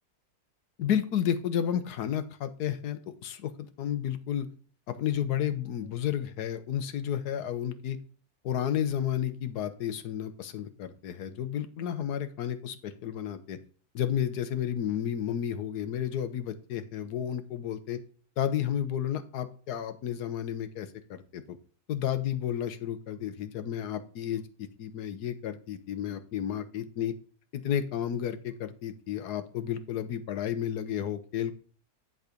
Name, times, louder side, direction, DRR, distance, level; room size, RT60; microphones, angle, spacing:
voice 1, 0.8-3.5 3.8-4.5 4.9-8.0 8.4-13.6 13.9-18.0 18.4-21.6 21.9-27.1 27.5-31.5, left 9 dB, 85° left, 11 dB, 1.4 m, -32 dB
11.0 x 4.1 x 5.0 m, 0.41 s
omnidirectional pair, 1.7 m